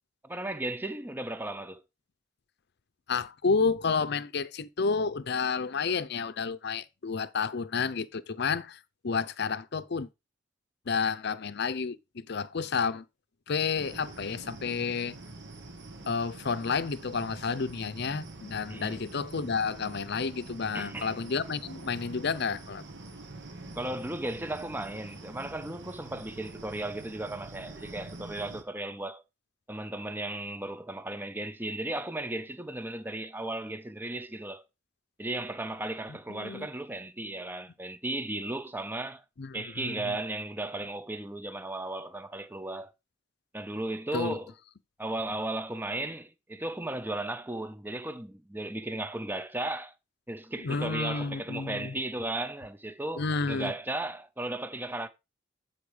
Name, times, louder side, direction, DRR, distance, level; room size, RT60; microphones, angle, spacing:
voice 1, 0.2-1.8 18.7-19.0 20.7-21.1 23.8-29.2 29.7-34.6 35.2-39.2 39.5-42.9 43.5-44.5 45.0-49.9 50.3-55.1, right 1 dB, 10° right, 0.7 m, -35 dB
voice 2, 3.1-10.1 10.9-13.0 13.5-15.1 16.1-22.8 36.1-36.7 39.4-40.2 44.1-44.4 50.6-51.9 53.2-53.7, left 5 dB, 55° left, 0.6 m, -31 dB
sound 1, 13.8-28.6, right 2 dB, 60° right, 1.4 m, -45 dB
8.8 x 4.2 x 4.9 m
head